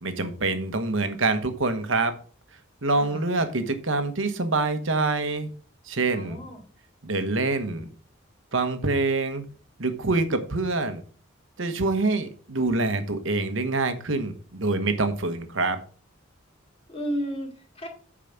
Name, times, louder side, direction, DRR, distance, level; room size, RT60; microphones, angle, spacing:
voice 1, 0.0-2.1 2.8-5.5 5.9-6.4 7.0-7.9 8.5-9.5 9.8-11.0 11.6-15.8, right 3 dB, 70° right, 9 dB, 1.2 m, -25 dB
voice 2, 2.9-3.2 6.1-6.6 16.9-17.9, equal, 30° left, 0 dB, 2.6 m, -33 dB
8.7 x 5.0 x 5.9 m, 0.41 s
head